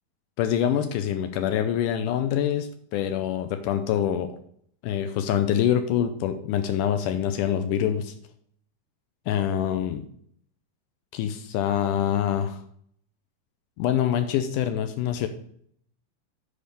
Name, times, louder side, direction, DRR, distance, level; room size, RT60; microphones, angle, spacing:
voice 1, 0.4-4.3 4.8-8.1 9.3-10.1 11.1-12.6 13.8-15.3, left 10 dB, 90° left, 8 dB, 1.8 m, -25 dB
7.4 x 4.4 x 6.8 m, 0.63 s
omnidirectional pair, 4.4 m